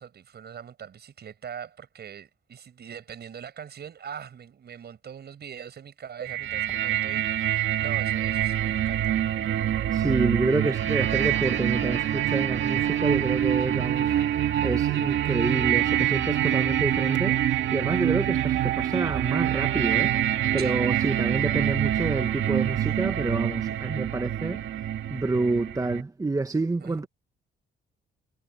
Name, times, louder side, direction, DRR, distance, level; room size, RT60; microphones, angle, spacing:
voice 1, 0.0-9.2 20.6-20.8 26.8-27.1, right 8 dB, 55° right, 6.9 m, -42 dB
sound 1, 6.3-26.0, right 11 dB, 70° right, 1.9 m, -25 dB
voice 2, 9.9-14.1 14.6-17.4 17.7-20.1 20.5-24.6 25.1-27.1, right 3 dB, 15° right, 1.1 m, -28 dB
cardioid pair, 90°, 20 cm